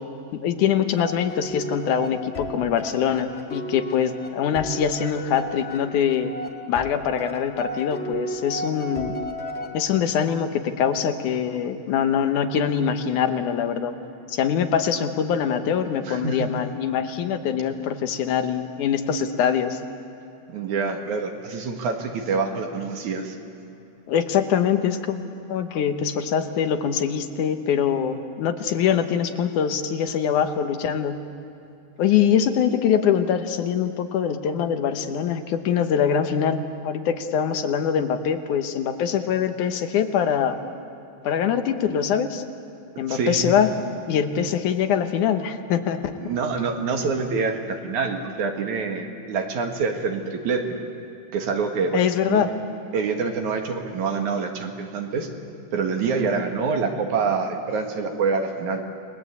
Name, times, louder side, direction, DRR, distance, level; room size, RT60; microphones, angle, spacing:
voice 1, 0.3-6.3 6.7-9.2 9.7-13.9 14.3-19.8 24.1-25.2 25.5-31.2 32.0-40.6 41.2-42.4 43.0-43.7 44.1-46.1 51.9-52.5, left 8 dB, 75° left, 8 dB, 2.6 m, -23 dB
sound 1, 1.0-10.3, equal, 30° left, 1.2 m, -34 dB
voice 2, 16.1-16.5 20.5-23.4 43.1-43.4 46.2-50.8 51.3-52.4 52.9-55.3 55.7-58.8, right 4 dB, 70° right, 4 dB, 3.2 m, -26 dB
29.5 x 20.5 x 8.3 m, 2.7 s
omnidirectional pair, 3.6 m